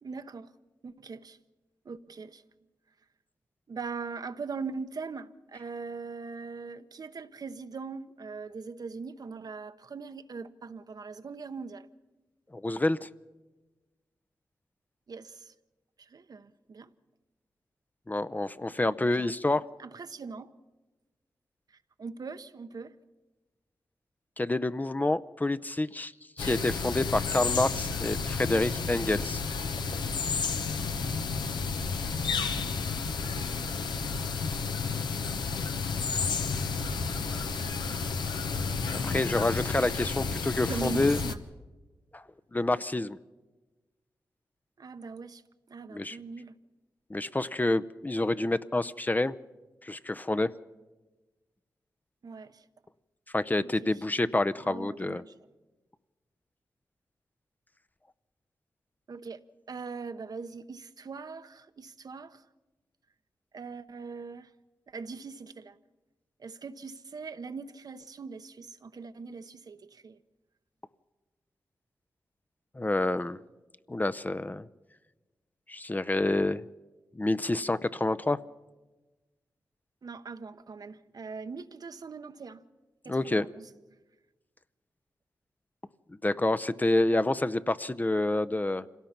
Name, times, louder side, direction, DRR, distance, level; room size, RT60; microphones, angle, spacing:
voice 1, 0.0-0.5 0.8-1.4 1.8-2.4 3.7-11.9 15.1-15.5 16.0-16.9 19.0-19.3 19.8-20.5 21.7-23.0 37.1-38.0 40.7-41.4 44.8-45.4 45.7-46.6 52.2-52.7 53.6-54.0 54.6-55.3 59.1-62.4 63.5-64.5 64.9-65.8 66.4-70.2 80.0-82.6 83.0-83.7, right 4 dB, 60° right, 0.9 m, -41 dB
voice 2, 12.5-13.1 18.1-19.6 24.4-26.1 26.4-29.4 39.0-41.2 42.1-42.2 42.5-43.2 45.9-46.2 47.1-49.3 49.8-50.5 53.3-55.2 72.8-73.4 73.9-74.7 75.7-76.6 77.1-78.4 83.1-83.5 86.2-88.9, left 2 dB, 25° left, 0.6 m, -28 dB
sound 1, 26.4-41.3, left 5 dB, 85° left, 1.0 m, -31 dB
26.0 x 17.0 x 5.9 m
cardioid pair, 50°, 7 cm